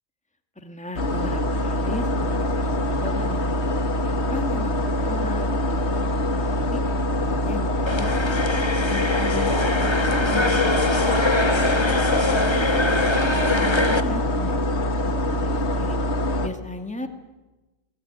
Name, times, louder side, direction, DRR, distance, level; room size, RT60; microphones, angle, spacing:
voice 1, 0.6-6.8 7.2-8.4 8.8-10.7 11.0-11.9 12.3-16.0 16.4-17.1, left 2 dB, 5° left, 6 dB, 1.9 m, -37 dB
sound 1, 1.0-16.5, left 1 dB, 85° left, 2.0 m, -24 dB
sound 2, 7.9-14.0, left 2 dB, 25° left, 1.4 m, -23 dB
23.0 x 19.0 x 9.5 m, 1.1 s
omnidirectional pair, 1.1 m